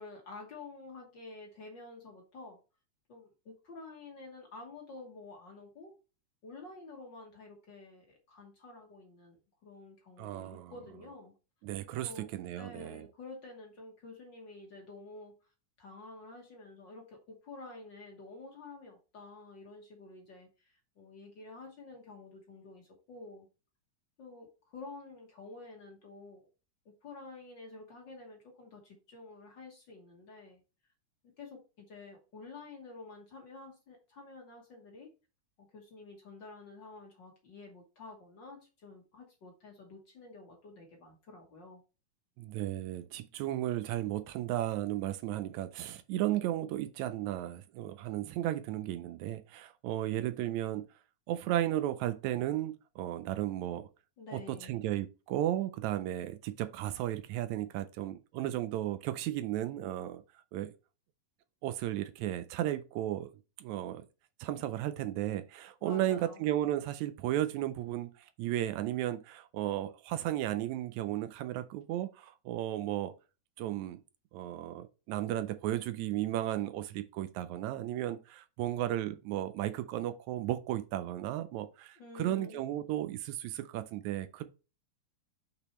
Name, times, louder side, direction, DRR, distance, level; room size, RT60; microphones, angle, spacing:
voice 1, 0.0-2.6 3.1-5.9 6.4-11.3 12.0-12.3 12.6-15.3 15.8-23.5 24.2-26.5 27.0-30.6 31.4-35.1 35.6-41.8 54.2-54.8 65.8-66.4 82.0-82.6, left 3 dB, 50° left, 1.5 m, -50 dB
voice 2, 10.2-10.7 11.6-13.1 42.4-50.8 51.3-53.9 54.3-60.2 60.5-60.7 61.6-63.3 63.6-64.1 64.4-73.1 73.6-74.0 74.3-84.4, right 13 dB, 80° right, 1.8 m, -34 dB
6.1 x 6.0 x 3.1 m
omnidirectional pair, 3.4 m